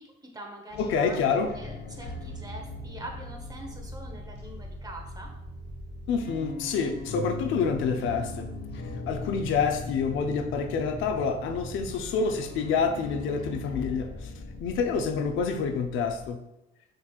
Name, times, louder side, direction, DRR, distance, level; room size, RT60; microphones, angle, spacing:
voice 1, 0.1-5.3, right 1 dB, 20° right, 2 dB, 1.0 m, -44 dB
sound 1, 0.7-16.3, left 2 dB, 60° left, 1.0 m, -39 dB
voice 2, 0.8-1.5 6.1-8.5 9.1-14.3 14.6-16.4, left 5 dB, 85° left, 5 dB, 0.5 m, -27 dB
6.1 x 3.1 x 2.4 m, 0.89 s
cardioid pair, 90°, 20 cm